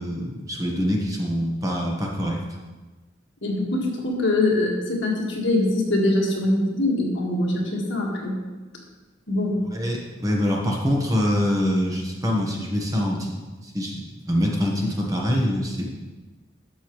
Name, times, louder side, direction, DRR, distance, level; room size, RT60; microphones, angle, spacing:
voice 1, 0.0-2.4 9.7-13.3 13.6-15.9, equal, 20° right, -1 dB, 1.2 m, -24 dB
voice 2, 3.4-8.4 9.3-9.6, left 2 dB, 65° left, -2 dB, 1.8 m, -23 dB
11.5 x 7.0 x 3.1 m, 1.2 s
head